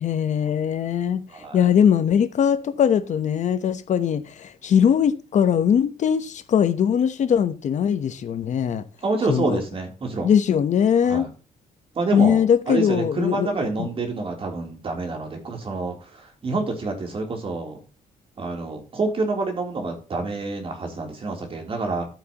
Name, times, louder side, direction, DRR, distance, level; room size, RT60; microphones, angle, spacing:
voice 1, 0.0-8.8 9.3-9.6 10.2-11.3 12.1-13.5 13.8-13.9, left 8 dB, 55° left, 1.0 m, -21 dB
voice 2, 1.3-1.7 9.0-10.3 11.1-11.3 12.0-17.8 18.4-22.1, right 3 dB, 40° right, 3.4 m, -28 dB
11.5 x 9.1 x 3.0 m
cardioid pair, 135°, 15 cm